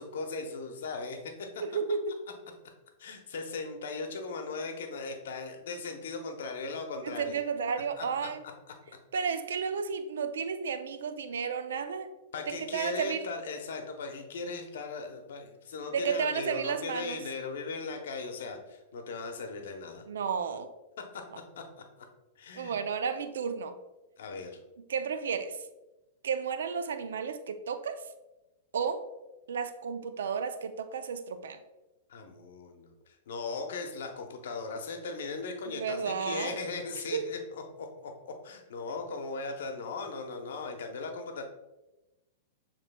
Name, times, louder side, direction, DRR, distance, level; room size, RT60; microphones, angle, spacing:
voice 1, 0.0-1.3 3.0-7.4 8.0-8.3 12.3-20.1 21.1-21.2 21.5-21.6 22.4-22.8 24.2-24.5 32.1-41.4, left 4 dB, 75° left, 4 dB, 0.7 m, -38 dB
voice 2, 1.6-2.2 7.0-8.4 9.1-12.1 12.5-13.2 15.9-17.2 20.1-20.7 22.5-23.8 24.9-25.6 26.2-28.0 28.7-29.1 29.5-31.6 35.6-36.6 37.1-37.3, right 6 dB, 85° right, 10 dB, 0.4 m, -32 dB
6.8 x 3.0 x 2.2 m, 1.0 s
hypercardioid pair, 130°, 0 cm